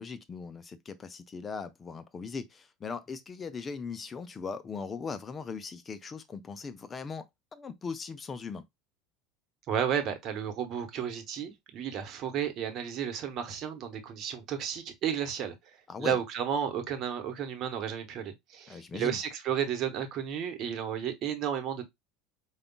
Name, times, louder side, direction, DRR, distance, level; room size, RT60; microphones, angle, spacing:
voice 1, 0.0-8.6 15.9-16.2 18.7-19.2, left 5 dB, 30° left, 0.5 m, -39 dB
voice 2, 9.7-15.5 16.0-21.8, right 8 dB, 50° right, 1.0 m, -32 dB
5.0 x 2.3 x 2.3 m
hypercardioid pair, 80°, 0 cm